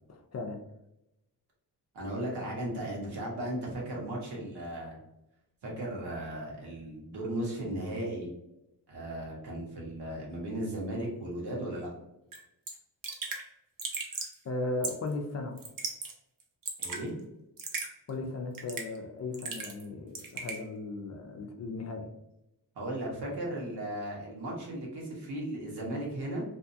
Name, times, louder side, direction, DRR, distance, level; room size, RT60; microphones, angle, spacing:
voice 1, 0.1-0.6 14.4-15.6 18.1-22.1, left 2 dB, 40° left, 4 dB, 0.5 m, -36 dB
voice 2, 1.9-5.0 5.6-8.3 8.9-11.9 16.8-17.1 22.7-26.4, right 1 dB, 75° right, -3 dB, 1.2 m, -36 dB
Raindrop / Drip, 12.3-12.4 12.7-12.8 13.0-13.4 13.8-14.3 14.8-15.1 15.6-16.1 16.4-17.0 17.6-17.9 18.5-19.0 19.3-19.9 20.1-20.6, right 4 dB, 55° right, 0.7 m, -36 dB
2.7 x 2.3 x 2.6 m, 0.88 s
cardioid pair, 70°, 40 cm